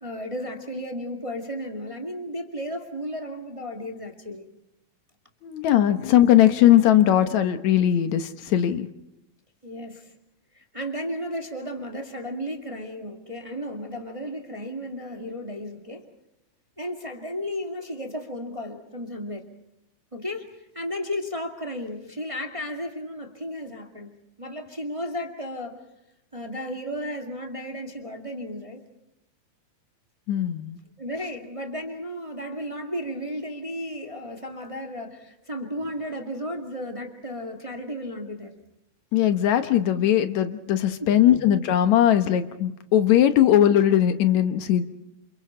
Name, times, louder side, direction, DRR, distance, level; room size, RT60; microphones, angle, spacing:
voice 1, 0.0-4.5 9.6-10.1 10.5-16.1 16.8-19.5 20.1-25.8 26.3-28.9 31.0-38.5 41.0-41.5, equal, 15° right, 2 dB, 1.7 m, -34 dB
voice 2, 5.4-8.9 30.3-30.8 39.1-44.8, left 11 dB, 75° left, 9 dB, 2.4 m, -19 dB
28.5 x 28.5 x 4.4 m, 0.86 s
omnidirectional pair, 3.3 m